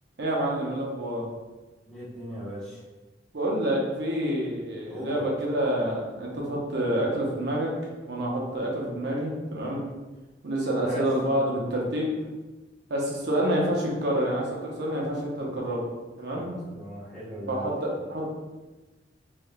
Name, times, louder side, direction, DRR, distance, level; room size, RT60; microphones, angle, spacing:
voice 1, 0.2-1.3 3.3-7.7 8.1-9.8 10.4-12.1 12.9-15.8 16.2-16.5 17.5-18.3, right 1 dB, 65° right, -3 dB, 0.8 m, -28 dB
voice 2, 1.9-2.8 4.9-5.3 10.8-11.1 16.3-17.8, equal, ahead, -14 dB, 1.0 m, -38 dB
3.3 x 3.2 x 2.3 m, 1.1 s
head